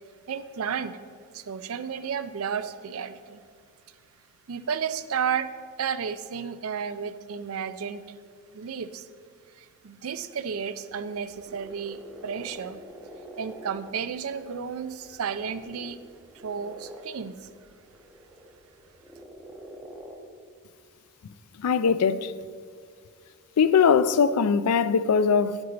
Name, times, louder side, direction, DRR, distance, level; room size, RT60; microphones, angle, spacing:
voice 1, 0.3-1.0 1.3-3.4 4.5-5.5 5.8-8.0 8.5-9.1 9.5-12.8 13.4-16.0 16.4-17.5, right 7 dB, 70° right, 0.5 m, -32 dB
sound 1, 10.9-20.1, right 1 dB, ahead, 0.9 m, -47 dB
voice 2, 21.2-22.3 23.6-25.6, left 6 dB, 85° left, 0.4 m, -21 dB
9.4 x 8.0 x 4.0 m
head